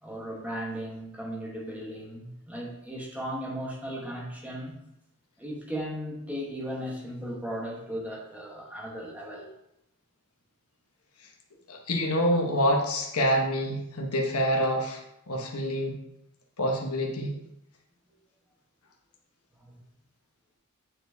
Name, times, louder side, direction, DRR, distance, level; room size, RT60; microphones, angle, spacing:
voice 1, 0.0-4.8 5.4-9.5 19.5-19.8, equal, 5° right, -2 dB, 1.1 m, -36 dB
voice 2, 11.7-15.0 15.3-16.0 16.6-17.3, equal, 80° left, 1 dB, 1.1 m, -26 dB
8.7 x 4.4 x 2.7 m, 0.82 s
head